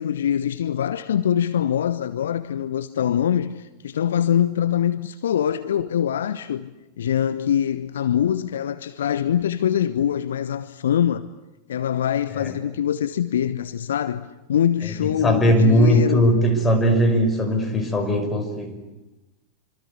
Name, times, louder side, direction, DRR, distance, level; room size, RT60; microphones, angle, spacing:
voice 1, 0.0-6.7 7.0-11.3 11.7-16.3, left 9 dB, 65° left, 0.9 m, -23 dB
voice 2, 15.0-18.8, equal, 15° left, 5.5 m, -19 dB
26.5 x 25.5 x 8.3 m
figure-of-eight pair, 90°, 0 cm